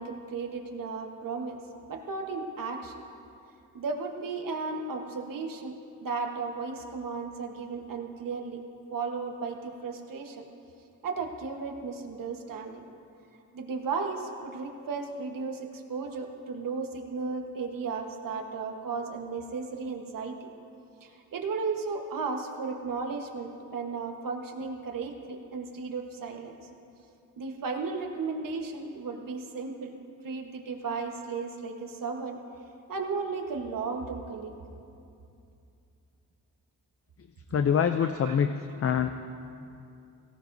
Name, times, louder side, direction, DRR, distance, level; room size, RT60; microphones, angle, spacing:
voice 1, 0.0-1.6 1.9-3.0 3.7-8.6 8.9-10.5 11.0-12.8 13.5-20.5 21.0-26.6 27.4-29.9 30.2-32.4 32.9-34.5 38.0-38.4 38.8-38.9, right 4 dB, 80° right, 3 dB, 1.3 m, -35 dB
voice 2, 37.5-38.5 38.8-39.1, left 8 dB, 45° left, 8 dB, 0.5 m, -24 dB
17.5 x 17.0 x 2.7 m, 2.6 s
wide cardioid pair, 105°, 33 cm